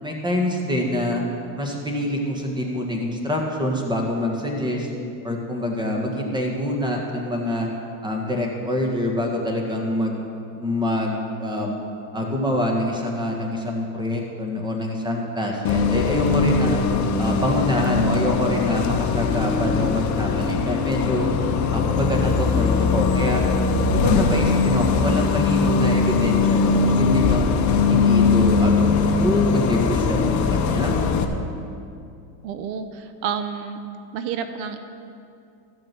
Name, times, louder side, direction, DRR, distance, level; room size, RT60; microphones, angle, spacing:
voice 1, 0.0-1.2 1.5-4.9 5.2-7.7 8.0-10.2 10.6-11.8 12.1-16.8 17.2-21.3 21.7-23.4 23.9-27.5 27.9-31.0, left 1 dB, 10° right, 1 dB, 1.6 m, -25 dB
Bus, 15.6-31.2, left 4 dB, 35° left, 0.9 m, -20 dB
voice 2, 32.4-33.8 34.1-34.8, right 7 dB, 80° right, 9 dB, 0.9 m, -29 dB
14.5 x 6.4 x 6.0 m, 2.5 s
supercardioid pair, 125°, 49 cm